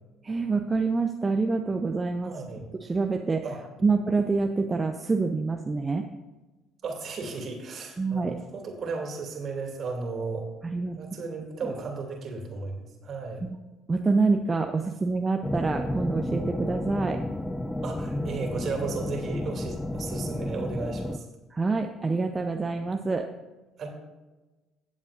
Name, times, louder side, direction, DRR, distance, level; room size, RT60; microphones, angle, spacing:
voice 1, 0.2-2.3 2.8-3.4 3.8-6.1 8.0-8.4 10.6-11.0 11.6-11.7 13.4-13.6 13.9-17.2 21.5-23.3, right 3 dB, 25° right, 4 dB, 0.7 m, -26 dB
voice 2, 2.2-2.6 3.4-3.6 6.8-10.5 10.9-13.5 17.8-21.3 23.8-23.9, right 4 dB, 50° right, 2 dB, 2.6 m, -34 dB
sound 1, 15.4-21.2, left 1 dB, 10° left, 0.6 m, -31 dB
17.5 x 7.4 x 2.6 m, 1.2 s
hypercardioid pair, 60°, 0 cm